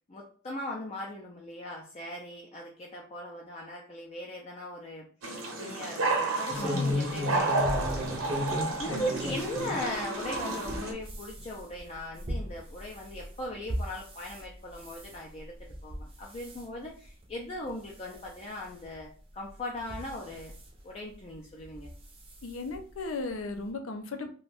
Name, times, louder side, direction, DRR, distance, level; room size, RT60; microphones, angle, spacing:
voice 1, 0.1-5.1 5.6-20.5 20.8-21.9, left 1 dB, 30° left, -2 dB, 0.4 m, -39 dB
sound 1, 5.2-10.9, right 2 dB, 85° right, 0.8 m, -31 dB
voice 2, 6.5-6.9 8.9-9.1 22.4-24.3, left 3 dB, 85° left, 6 dB, 0.5 m, -36 dB
sound 2, 6.5-9.8 10.3-14.4 14.8-15.2 15.7-16.0 16.3-16.6 17.2-17.3 17.7-17.8 18.9-19.0 19.8-20.6 21.7-21.9 22.3-22.4 22.7-22.8, left 1 dB, 25° right, 0.6 m, -34 dB
2.5 x 2.2 x 3.3 m, 0.42 s
head